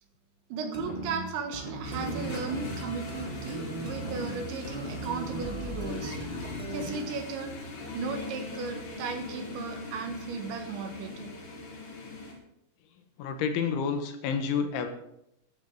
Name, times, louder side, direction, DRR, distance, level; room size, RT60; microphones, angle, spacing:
voice 1, 0.5-6.2 6.7-7.6 7.9-11.3, right 5 dB, 75° right, 6 dB, 3.7 m, -36 dB
sound 1, 0.7-7.2, right 1 dB, 25° right, 0.8 m, -38 dB
sound 2, 1.8-12.3, left 2 dB, 60° left, 4.6 m, -40 dB
voice 2, 13.2-14.9, left 6 dB, 80° left, 7 dB, 3.7 m, -29 dB
15.0 x 12.5 x 4.8 m, 0.78 s
omnidirectional pair, 5.6 m